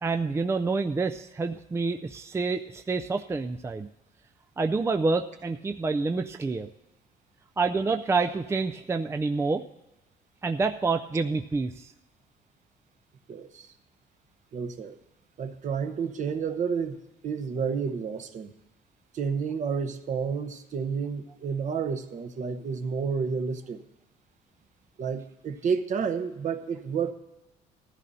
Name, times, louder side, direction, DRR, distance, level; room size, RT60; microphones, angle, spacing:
voice 1, 0.0-3.9 4.6-6.7 7.6-9.6 10.4-11.9, right 4 dB, 15° right, 6 dB, 0.4 m, -28 dB
voice 2, 13.3-13.7 14.5-15.0 15.4-17.0 17.2-18.5 19.1-23.8 25.0-27.1, right 6 dB, 45° right, 7 dB, 1.0 m, -30 dB
19.0 x 14.0 x 2.7 m, 0.99 s
cardioid pair, 110°, 17 cm